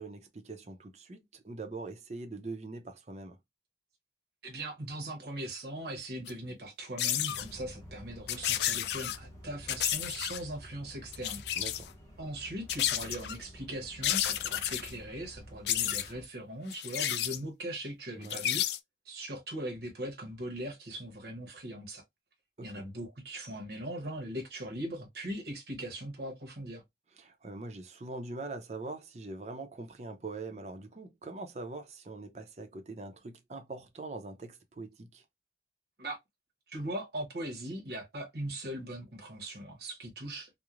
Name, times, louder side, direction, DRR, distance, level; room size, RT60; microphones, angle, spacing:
voice 1, 0.0-3.4 11.6-11.9 18.2-18.4 22.6-22.7 27.2-35.2, right 3 dB, 40° right, 0.5 m, -43 dB
voice 2, 4.4-11.4 12.2-18.6 19.0-22.0 22.6-26.8 36.0-36.2 36.7-40.5, right 1 dB, 60° right, 0.8 m, -40 dB
sound 1, 6.3-6.4 7.0-7.4 8.3-9.2 9.7-10.4 11.1-11.9 12.7-13.4 14.0-14.9 15.7-16.1 16.7-17.4 18.2-18.8, left 11 dB, 70° left, 0.3 m, -31 dB
sound 2, 7.3-16.3, equal, 20° left, 0.8 m, -51 dB
3.0 x 2.0 x 2.4 m
head